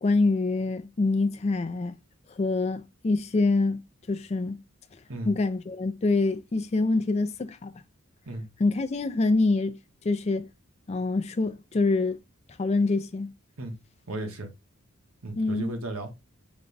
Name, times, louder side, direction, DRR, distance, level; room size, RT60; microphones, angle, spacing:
voice 1, 0.0-2.0 2.3-3.8 4.1-4.6 5.3-7.8 8.6-9.8 10.0-10.5 10.9-12.2 12.6-13.3 15.4-15.7, left 3 dB, 30° left, 0.4 m, -25 dB
voice 2, 14.1-14.5 15.2-16.1, right 2 dB, 80° right, 1.2 m, -34 dB
5.1 x 2.3 x 3.8 m
head